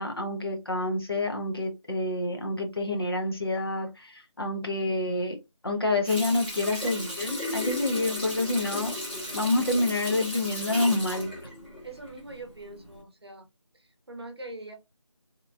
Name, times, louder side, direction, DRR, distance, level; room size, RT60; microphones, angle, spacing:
voice 1, 0.0-5.4 5.6-9.0 9.3-11.3, left 2 dB, 50° left, 0.8 m, -28 dB
Water tap faucet, 6.0-12.4 12.8-13.0, left 1 dB, 20° left, 1.1 m, -35 dB
voice 2, 11.8-13.5 13.7-14.8, right 2 dB, 50° right, 0.8 m, -42 dB
3.0 x 2.2 x 2.4 m
figure-of-eight pair, 175°, 16 cm